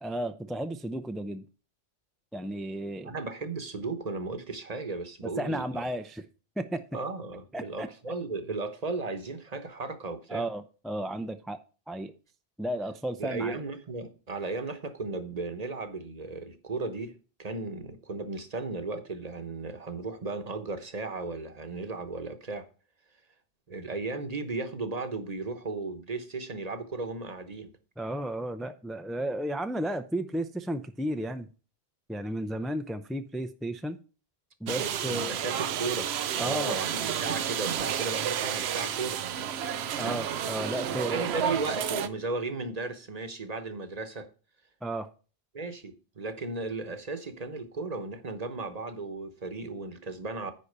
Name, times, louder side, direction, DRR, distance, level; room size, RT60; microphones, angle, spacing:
voice 1, 0.0-1.4 2.3-3.1 5.2-6.2 6.6-6.8 7.5-7.9 10.3-11.6 11.9-12.1 12.6-13.6 28.0-31.5 32.1-34.0 34.6-35.4 36.4-36.8 40.0-41.6 44.8-45.1, right 1 dB, ahead, 0.3 m, -33 dB
voice 2, 3.0-5.8 6.9-10.5 13.2-22.7 23.7-27.7 34.8-39.2 40.9-44.3 45.5-50.5, right 3 dB, 40° right, 1.1 m, -35 dB
sound 1, 34.7-42.1, right 9 dB, 85° right, 0.9 m, -31 dB
9.9 x 4.2 x 6.6 m
omnidirectional pair, 1.0 m